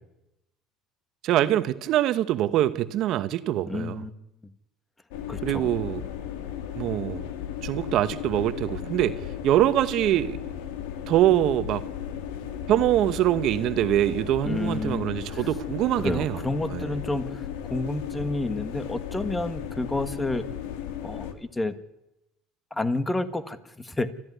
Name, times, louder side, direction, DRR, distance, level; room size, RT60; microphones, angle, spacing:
voice 1, 1.2-4.0 5.4-6.0 6.8-7.3 7.6-10.4 11.1-11.8 12.7-16.4 16.7-16.9, right 13 dB, 60° right, 1.1 m, -24 dB
voice 2, 3.7-4.1 5.3-5.7 14.4-15.5 16.0-20.4 21.0-21.7 22.7-24.1, left 2 dB, 10° left, 1.5 m, -30 dB
sound 1, 5.1-21.3, left 9 dB, 85° left, 2.2 m, -35 dB
28.5 x 14.0 x 9.5 m
supercardioid pair, 110°, 0 cm